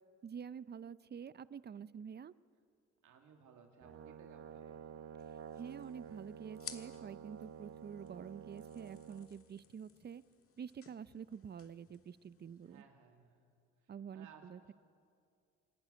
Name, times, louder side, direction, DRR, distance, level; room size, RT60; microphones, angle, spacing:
voice 1, 0.2-2.3 5.6-10.2 10.6-12.8 13.9-14.7, right 7 dB, 35° right, 18 dB, 0.5 m, -48 dB
voice 2, 3.0-4.8 12.6-13.6 13.8-14.7, right 6 dB, 90° right, 3 dB, 2.3 m, -61 dB
Brass instrument, 3.8-9.3, right 8 dB, 50° right, 1.0 m, -51 dB
sound 1, 5.2-12.8, left 7 dB, 50° left, 1.6 m, -57 dB
26.0 x 11.5 x 9.7 m, 2.4 s
cardioid pair, 90°, 30 cm